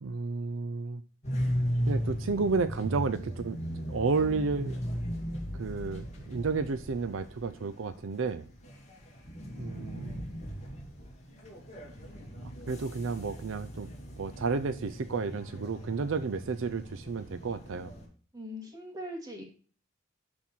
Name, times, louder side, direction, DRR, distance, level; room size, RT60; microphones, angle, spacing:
voice 1, 0.0-1.0 1.9-3.6 3.9-4.8 5.5-8.4 9.6-10.3 12.7-13.9 14.2-17.9, right 4 dB, 75° right, 12 dB, 0.5 m, -31 dB
sound 1, 1.2-18.1, equal, 35° left, 2.6 m, -37 dB
voice 2, 18.3-19.4, equal, 20° right, 0 dB, 2.5 m, -40 dB
11.5 x 4.4 x 4.4 m, 0.42 s
head